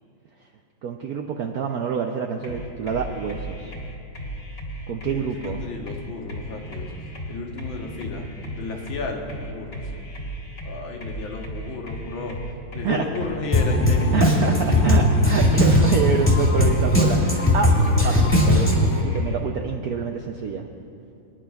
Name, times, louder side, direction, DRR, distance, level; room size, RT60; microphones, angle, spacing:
voice 1, 0.8-3.7 4.9-5.6 12.8-13.0 14.1-18.7 19.0-20.6, right 6 dB, 75° right, 3 dB, 0.8 m, -27 dB
sound 1, 2.4-19.4, equal, 40° left, 1.7 m, -35 dB
voice 2, 5.1-6.9 7.3-8.3 8.5-9.8 10.6-12.4 12.7-14.8, left 3 dB, 75° left, 1 dB, 1.9 m, -33 dB
Drum kit, 13.5-19.0, left 1 dB, 5° left, 1.8 m, -18 dB
24.5 x 10.0 x 2.3 m, 2.6 s
omnidirectional pair, 2.2 m